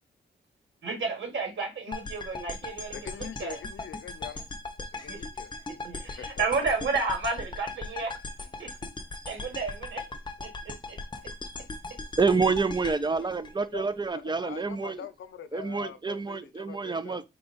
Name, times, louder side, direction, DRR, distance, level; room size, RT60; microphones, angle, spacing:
voice 1, 0.8-3.1 3.4-3.6 5.1-5.2 5.8-8.1 8.4-8.7 9.3-10.0 10.4-11.0, right 4 dB, 80° right, 2.0 m, -32 dB
sound 1, 1.9-14.1, left 3 dB, 25° left, 0.7 m, -39 dB
voice 2, 2.9-4.5 4.9-5.5 6.2-6.5 13.2-13.3 13.7-17.2, left 8 dB, 80° left, 0.5 m, -43 dB
voice 3, 12.2-15.0 15.5-17.2, right 4 dB, 20° right, 0.5 m, -28 dB
4.3 x 2.4 x 3.9 m
wide cardioid pair, 115°, 20 cm